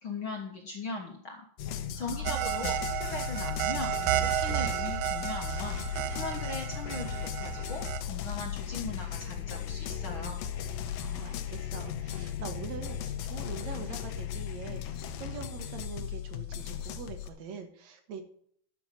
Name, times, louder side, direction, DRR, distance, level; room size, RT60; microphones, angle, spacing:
voice 1, 0.0-1.5 2.0-3.9 4.2-10.4, left 3 dB, 55° left, 1 dB, 1.4 m, -39 dB
sound 1, 1.6-17.3, left 9 dB, 80° left, 2.6 m, -36 dB
voice 2, 1.9-2.5 10.9-18.2, right 6 dB, 60° right, 6 dB, 2.4 m, -44 dB
sound 2, 2.2-8.0, right 13 dB, 80° right, 1.8 m, -32 dB
12.0 x 5.8 x 7.4 m, 0.63 s
omnidirectional pair, 4.0 m